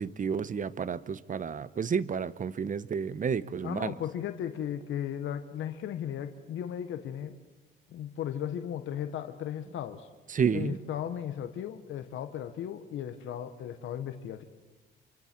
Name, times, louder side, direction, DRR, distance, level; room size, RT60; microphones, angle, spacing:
voice 1, 0.0-3.9 10.3-10.8, right 6 dB, 40° right, 16 dB, 0.9 m, -31 dB
voice 2, 3.6-7.4 7.9-10.1 10.5-14.4, left 10 dB, 80° left, 8 dB, 1.3 m, -36 dB
27.0 x 24.5 x 4.6 m, 1.2 s
cardioid pair, 90°, 20 cm